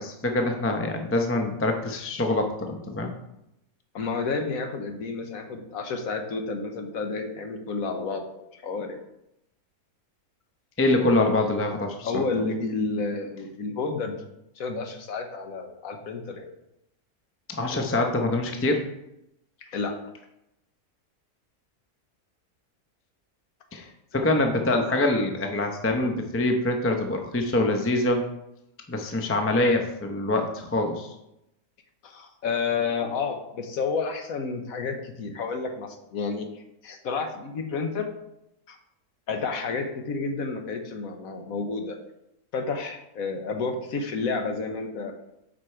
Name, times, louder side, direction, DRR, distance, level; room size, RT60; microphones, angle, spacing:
voice 1, 0.0-3.1 10.8-12.2 17.6-18.8 23.7-23.9 24.1-28.2 28.9-31.1, left 2 dB, 15° left, 4 dB, 0.5 m, -25 dB
voice 2, 3.9-9.0 12.0-14.2 14.6-16.4 19.7-20.0 32.0-38.1 38.7-38.8 39.3-42.0 42.5-45.1, left 4 dB, 65° left, 5 dB, 1.3 m, -30 dB
8.2 x 5.2 x 4.4 m, 0.85 s
omnidirectional pair, 1.6 m